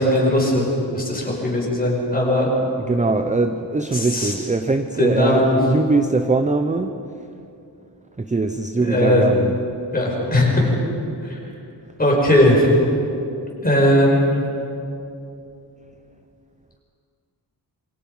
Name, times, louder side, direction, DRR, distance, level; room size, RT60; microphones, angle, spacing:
voice 1, 0.0-2.5 3.9-4.3 5.0-5.6 8.8-9.3 9.9-10.8 12.0-12.7 13.6-14.4, left 1 dB, 20° left, -3 dB, 5.4 m, -18 dB
voice 2, 2.8-6.9 8.2-9.6, right 3 dB, 15° right, 7 dB, 0.6 m, -21 dB
27.5 x 24.0 x 5.5 m, 2.7 s
wide cardioid pair, 180°, 43 cm